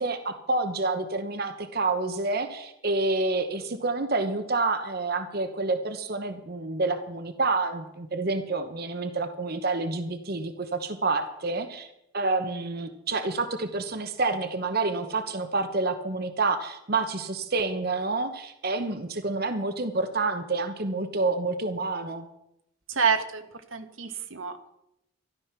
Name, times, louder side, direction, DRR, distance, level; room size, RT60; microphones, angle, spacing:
voice 1, 0.0-11.9 12.1-22.3, right 3 dB, 50° right, 8 dB, 1.1 m, -28 dB
voice 2, 22.9-23.4 23.7-24.7, right 6 dB, 90° right, 7 dB, 1.5 m, -27 dB
13.5 x 12.5 x 6.0 m, 0.82 s
head